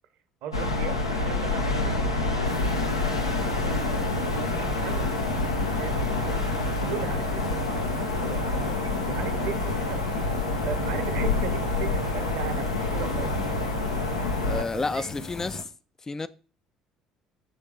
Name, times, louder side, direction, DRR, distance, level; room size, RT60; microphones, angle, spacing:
voice 1, 0.4-2.2 2.9-6.5 6.8-10.2 10.6-13.4 14.5-15.1, right 8 dB, 60° right, 0.8 m, -38 dB
sound 1, 0.5-14.6, left 2 dB, 85° left, 0.7 m, -27 dB
sound 2, 2.4-15.6, left 3 dB, 40° left, 1.2 m, -39 dB
voice 2, 14.4-15.7 16.1-16.3, left 3 dB, 20° left, 0.3 m, -30 dB
6.7 x 3.5 x 4.7 m
figure-of-eight pair, 55°, 2 cm